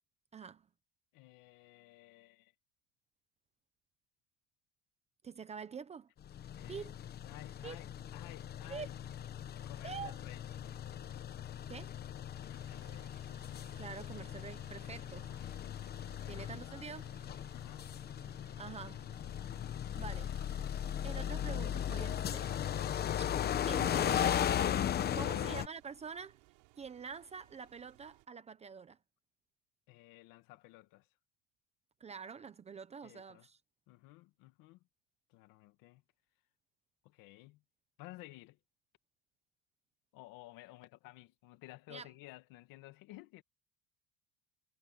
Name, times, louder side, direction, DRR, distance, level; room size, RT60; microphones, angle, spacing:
voice 1, 0.3-0.7 5.2-6.1 6.7-6.9 7.6-7.8 8.7-8.9 9.8-10.2 11.7-11.9 13.8-15.3 16.3-17.1 18.6-19.0 20.0-20.4 21.0-22.8 23.4-24.5 24.9-26.4 26.8-29.0 32.0-33.6 41.9-42.1, right 6 dB, 20° right, 0.7 m, -46 dB
voice 2, 1.1-2.5 6.5-6.9 7.2-8.9 9.6-10.4 12.3-13.2 14.2-14.4 14.8-15.1 15.4-16.0 16.2-16.9 17.5-17.9 25.1-25.7 29.9-31.1 33.0-33.5 33.9-34.8 35.3-36.0 37.0-37.6 38.0-38.6 40.1-43.4, left 18 dB, 65° left, 2.1 m, -55 dB
sound 1, 6.2-25.7, left 10 dB, 25° left, 0.9 m, -37 dB
sound 2, 12.5-28.3, right 26 dB, 85° right, 4.5 m, -64 dB
cardioid pair, 170°, 36 cm